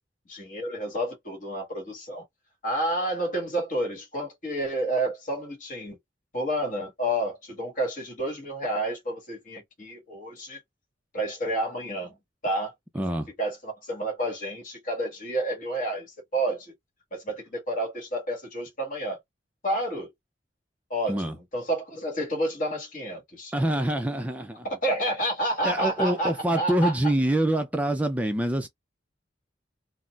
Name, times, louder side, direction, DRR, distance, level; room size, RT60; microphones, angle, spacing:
voice 1, 0.3-2.2 2.6-6.0 6.3-10.6 11.1-12.1 12.4-12.7 13.4-16.7 17.1-19.2 19.6-20.1 20.9-23.5 24.6-27.1, right 1 dB, 50° left, 1.6 m, -30 dB
voice 2, 12.9-13.3 21.1-21.4 23.5-24.7 25.6-28.7, right 1 dB, 10° right, 0.4 m, -25 dB
3.9 x 2.0 x 2.3 m
head